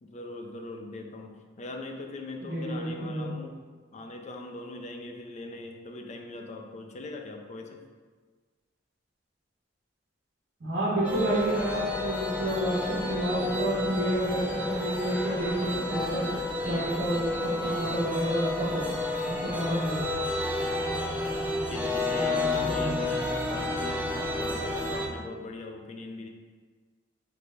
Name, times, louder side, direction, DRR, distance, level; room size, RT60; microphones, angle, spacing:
voice 1, 0.0-3.6 3.9-7.8 15.6-17.3 17.6-18.1 21.7-26.3, left 2 dB, 40° left, 3 dB, 0.4 m, -41 dB
voice 2, 2.4-3.2 10.6-16.3 16.6-19.0 19.2-20.1 22.1-23.0, right 1 dB, 80° right, -9 dB, 1.2 m, -30 dB
sound 1, 11.0-25.0, left 2 dB, 10° right, 0.6 m, -31 dB
3.3 x 3.3 x 3.9 m, 1.4 s
head